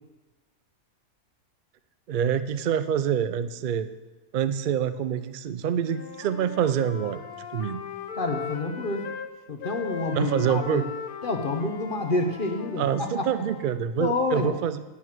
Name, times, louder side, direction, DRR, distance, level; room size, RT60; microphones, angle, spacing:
voice 1, 2.1-3.9 4.3-7.2 7.5-7.9 10.1-10.8 12.8-14.8, right 8 dB, 85° right, 12 dB, 0.4 m, -26 dB
Wind instrument woodwind instrument, 5.7-9.3 9.6-13.8, left 7 dB, 90° left, 1.4 m, -39 dB
voice 2, 8.2-9.1 9.5-10.9 11.2-13.2 14.0-14.6, left 3 dB, 40° left, 4 dB, 1.0 m, -28 dB
9.2 x 8.6 x 6.0 m, 1.2 s
omnidirectional pair, 1.5 m